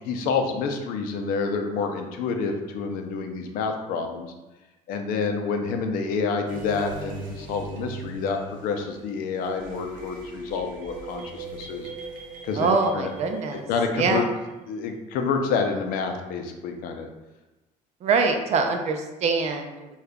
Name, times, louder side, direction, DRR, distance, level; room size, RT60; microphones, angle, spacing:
voice 1, 0.1-4.3 4.9-11.9 12.4-13.1 13.7-14.2 14.7-17.1, left 5 dB, 85° left, 4 dB, 0.5 m, -28 dB
sound 1, 6.5-14.5, right 3 dB, 70° right, 0.9 m, -40 dB
voice 2, 12.6-13.6 14.0-14.2 18.0-19.9, right 4 dB, 50° right, 4 dB, 0.4 m, -24 dB
4.9 x 2.3 x 2.2 m, 1.1 s
cardioid pair, 120°, 14 cm